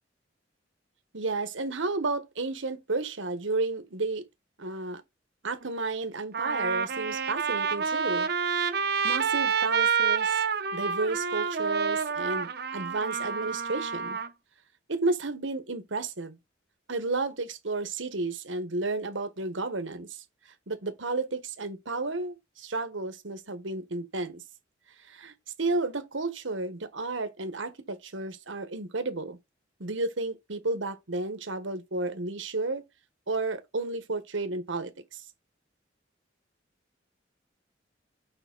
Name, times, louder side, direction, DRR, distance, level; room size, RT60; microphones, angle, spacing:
voice 1, 1.1-4.2 4.6-5.0 5.4-8.3 9.0-10.4 10.7-14.2 14.9-16.4 16.9-20.2 20.7-24.4 25.1-29.4 29.8-32.8 33.3-35.2, right 3 dB, 85° right, 1.4 m, -32 dB
Trumpet, 5.6-5.7 6.3-14.3, right 6 dB, 55° right, 0.9 m, -28 dB
7.0 x 5.3 x 4.0 m
head